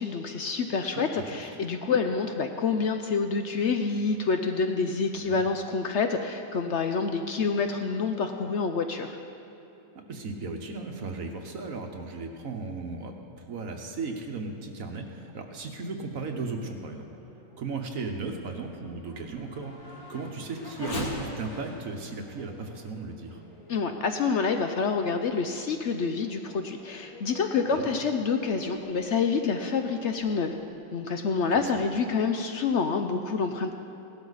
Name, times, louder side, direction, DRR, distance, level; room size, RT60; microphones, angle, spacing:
voice 1, 0.0-9.2 23.7-30.5 30.9-33.7, left 5 dB, 70° left, 6 dB, 0.6 m, -27 dB
voice 2, 5.2-5.5 9.9-13.1 13.5-17.1 17.6-23.4 27.7-27.8 31.7-31.8, right 3 dB, 55° right, 3 dB, 1.2 m, -36 dB
Race car auto racing / Accelerating revving vroom, 16.6-24.6 25.2-25.3 25.9-30.7, left 1 dB, 55° left, 2.0 m, -43 dB
17.0 x 12.5 x 4.0 m, 3.0 s
omnidirectional pair, 1.9 m